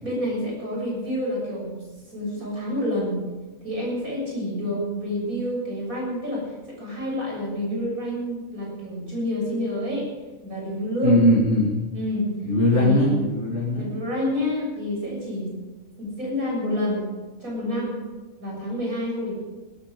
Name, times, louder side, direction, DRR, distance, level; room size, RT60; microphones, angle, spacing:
voice 1, 0.0-1.8 2.1-3.2 3.6-10.1 10.4-11.2 11.9-12.3 12.7-13.2 13.7-15.5 16.0-17.1 17.4-18.0 18.4-19.4, left 1 dB, 85° right, -3 dB, 7.4 m, -28 dB
voice 2, 11.0-11.8 12.4-13.8, left 1 dB, 55° left, -5 dB, 2.4 m, -20 dB
17.0 x 14.0 x 4.9 m, 1.2 s
omnidirectional pair, 1.5 m